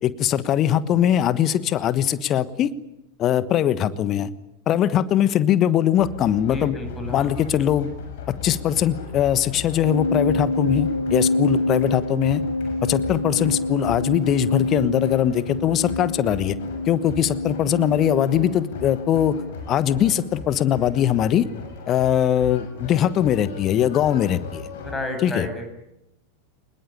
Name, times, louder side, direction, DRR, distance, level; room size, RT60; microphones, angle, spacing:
voice 1, 0.0-2.7 3.2-4.3 4.7-6.8 7.1-7.9 8.3-12.4 12.8-16.5 16.9-19.4 19.7-21.5 21.9-24.7 25.2-25.5, left 10 dB, 30° left, 16 dB, 1.3 m, -21 dB
sound 1, 6.0-25.0, left 4 dB, 55° left, 7.1 m, -37 dB
voice 2, 6.5-7.3 24.8-25.7, left 2 dB, 15° left, 6 dB, 7.1 m, -31 dB
sound 2, 9.8-19.5, left 2 dB, 85° left, 1.1 m, -27 dB
24.5 x 21.0 x 9.9 m, 0.87 s
figure-of-eight pair, 90°, 0 cm